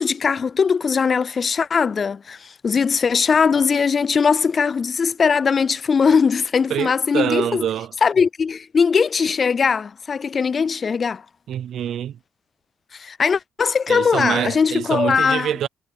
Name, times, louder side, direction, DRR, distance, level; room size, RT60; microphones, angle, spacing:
voice 1, 0.0-7.7 8.0-11.2 12.9-15.5, left 5 dB, 40° left, 0.3 m, -20 dB
voice 2, 6.7-7.9 11.5-12.2 13.9-15.7, right 10 dB, 75° right, 0.6 m, -25 dB
cardioid pair, 90°, 0 cm